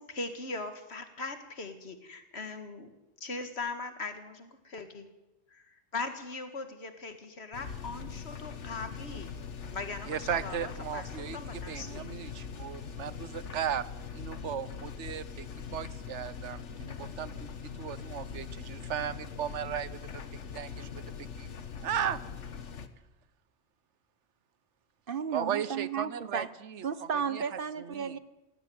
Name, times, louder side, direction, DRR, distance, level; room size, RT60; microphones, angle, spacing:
voice 1, 0.0-2.9 3.2-5.1 5.5-9.3 9.7-12.1, left 3 dB, 65° left, 9 dB, 2.1 m, -40 dB
sound 1, 7.5-22.9, left 6 dB, 85° left, 1.5 m, -42 dB
voice 2, 10.1-13.8 14.1-17.5 17.8-20.2 20.5-21.0 21.4-21.5 21.8-22.2 25.3-26.8 27.3-27.4 27.8-28.2, right 9 dB, 80° right, 17 dB, 1.2 m, -36 dB
voice 3, 25.1-26.5 26.8-28.2, right 6 dB, 50° right, 15 dB, 1.1 m, -33 dB
16.5 x 16.5 x 9.4 m, 1.0 s
omnidirectional pair, 1.2 m